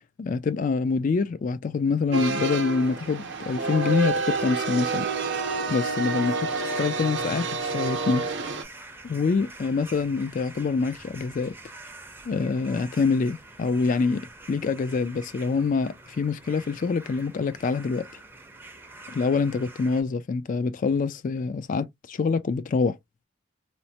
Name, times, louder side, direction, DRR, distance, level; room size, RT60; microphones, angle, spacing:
voice 1, 0.2-5.1 5.7-6.4 6.8-8.3 9.0-11.5 12.3-18.1 19.1-23.0, left 4 dB, 40° left, 0.3 m, -25 dB
sound 1, 2.1-8.6, right 4 dB, 60° right, 0.6 m, -28 dB
sound 2, 2.7-20.0, right 2 dB, 10° right, 0.5 m, -47 dB
3.1 x 2.0 x 2.7 m
head